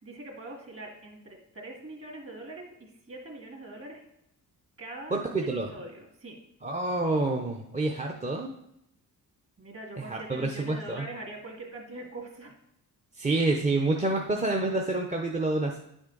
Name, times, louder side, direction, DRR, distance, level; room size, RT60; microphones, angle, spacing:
voice 1, 0.0-4.0 4.8-6.4 9.6-12.6, right 2 dB, 35° right, 1 dB, 2.0 m, -43 dB
voice 2, 5.1-5.7 6.6-8.5 10.0-11.0 13.1-15.8, right 2 dB, 20° right, 0 dB, 0.7 m, -28 dB
9.7 x 6.2 x 3.9 m, 0.78 s
cardioid pair, 115°, 38 cm